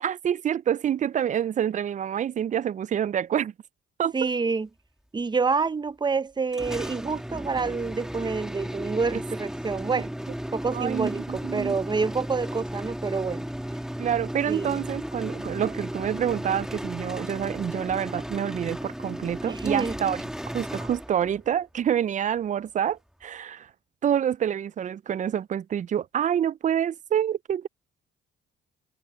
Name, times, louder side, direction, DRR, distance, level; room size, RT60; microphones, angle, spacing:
voice 1, 0.0-3.5 4.0-4.3 9.1-9.2 9.8-10.0 10.7-11.8 14.0-20.2 20.5-23.7 24.0-27.7, right 9 dB, 40° right, 0.4 m, -27 dB
voice 2, 4.1-4.7 5.1-10.1 10.5-13.5 14.5-14.8 19.4-20.0, right 4 dB, 20° right, 0.7 m, -28 dB
sound 1, 6.5-21.5, equal, 5° right, 2.3 m, -35 dB
cardioid pair, 90°, 20 cm